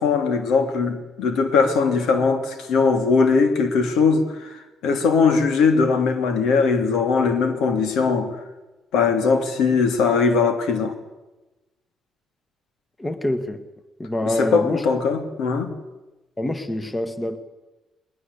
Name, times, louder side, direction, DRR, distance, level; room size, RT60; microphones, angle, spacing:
voice 1, 0.0-8.3 8.9-10.9 14.4-15.7, left 5 dB, 85° left, 3.0 m, -20 dB
voice 2, 13.0-13.6 14.0-14.9 16.4-17.4, left 1 dB, 15° left, 1.7 m, -26 dB
21.0 x 20.5 x 8.4 m
cardioid pair, 100°, 0 cm